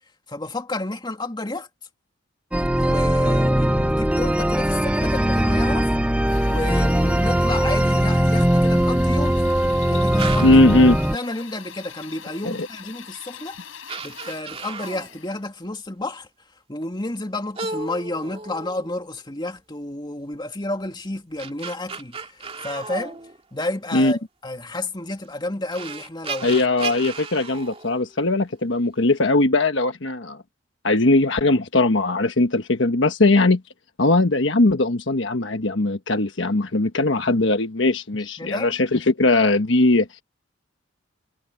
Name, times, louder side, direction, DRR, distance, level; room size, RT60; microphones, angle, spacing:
voice 1, 0.3-1.7 2.8-5.9 6.4-10.5 11.1-13.7 14.0-16.3 16.7-23.2 23.5-26.6 38.4-38.7, left 2 dB, 20° left, 2.3 m, -31 dB
sound 1, 2.5-11.2, equal, 5° right, 1.0 m, -20 dB
Drill, 6.3-15.5, left 8 dB, 85° left, 7.2 m, -42 dB
sound 2, 10.2-10.7 12.8-12.9 13.5-13.6 13.9-15.2 17.6-19.2 21.1-23.8 25.2-25.3 25.7-28.6, right 4 dB, 30° right, 2.5 m, -34 dB
voice 2, 10.4-11.0 12.4-12.7 23.9-24.1 26.4-30.4 30.8-33.6 34.0-40.1, left 2 dB, 65° left, 1.3 m, -19 dB
head